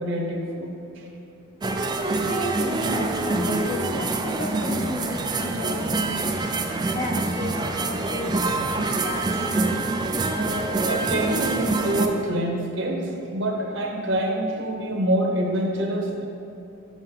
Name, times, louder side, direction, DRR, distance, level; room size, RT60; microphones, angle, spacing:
voice 1, 0.0-1.0 6.7-6.8 10.8-16.3, right 1 dB, 60° right, 1 dB, 0.9 m, -26 dB
sound 1, 1.6-12.1, right 2 dB, 20° right, 0.3 m, -25 dB
voice 2, 2.3-6.4 6.8-9.6, left 1 dB, 30° left, 1 dB, 0.6 m, -33 dB
7.3 x 6.3 x 3.8 m, 2.8 s
head